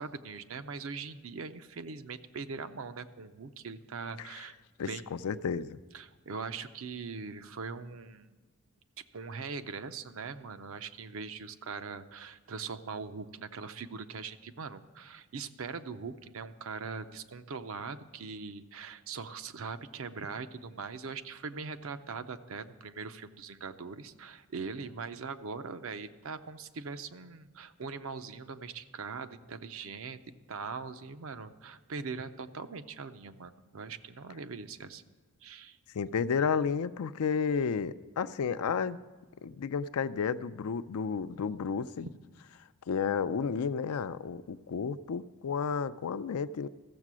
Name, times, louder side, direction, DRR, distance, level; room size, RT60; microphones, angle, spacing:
voice 1, 0.0-5.0 5.9-8.3 9.0-30.2 30.5-35.1 35.4-35.8, right 5 dB, 65° right, 11 dB, 0.5 m, -41 dB
voice 2, 4.8-5.8 35.9-39.0 39.4-42.1 42.9-46.7, left 6 dB, 80° left, 14 dB, 0.4 m, -32 dB
14.0 x 7.4 x 6.1 m, 1.3 s
head